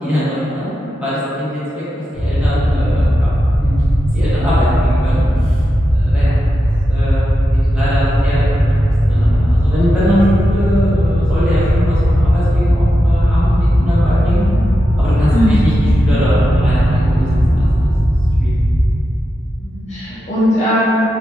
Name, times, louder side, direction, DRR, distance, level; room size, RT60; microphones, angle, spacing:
voice 1, 0.0-0.7 1.0-1.8 2.1-3.3 3.6-3.7 4.1-5.6 5.9-6.3 6.9-7.2 7.5-8.7 9.1-14.4 15.0-15.7 16.0-17.9 18.4-18.5, equal, 5° right, -13 dB, 1.1 m, -22 dB
sound 1, 2.1-18.9, equal, 50° right, 1.1 m, -15 dB
sound 2, 11.8-18.1, right 2 dB, 80° right, 0.4 m, -28 dB
voice 2, 19.6-21.1, left 1 dB, 35° left, -11 dB, 0.5 m, -18 dB
3.3 x 2.4 x 3.5 m, 2.9 s
head